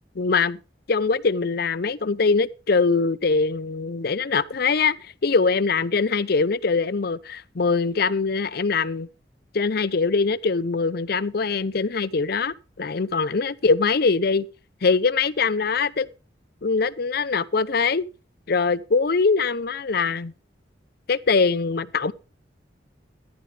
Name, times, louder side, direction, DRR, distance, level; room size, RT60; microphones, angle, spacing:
voice 1, 0.2-0.6 0.9-9.1 9.5-14.5 14.8-16.1 16.6-18.1 18.5-20.3 21.1-22.1, left 4 dB, 55° left, 0.6 m, -22 dB
14.0 x 11.0 x 3.4 m
head